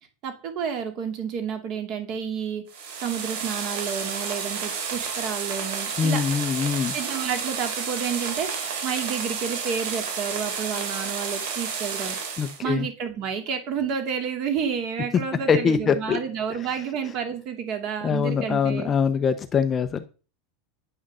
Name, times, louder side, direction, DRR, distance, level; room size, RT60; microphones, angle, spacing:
voice 1, 0.2-2.6 3.0-6.2 6.9-8.5 8.8-12.2 12.6-18.9, right 7 dB, 40° right, 6 dB, 2.6 m, -30 dB
sound 1, 2.7-12.6, right 6 dB, 70° right, 4.2 m, -31 dB
voice 2, 6.0-6.9 12.4-12.9 15.1-15.2 15.5-16.2 18.0-20.1, left 6 dB, 20° left, 9 dB, 0.7 m, -23 dB
10.0 x 6.3 x 6.8 m, 0.35 s
supercardioid pair, 170°, 0 cm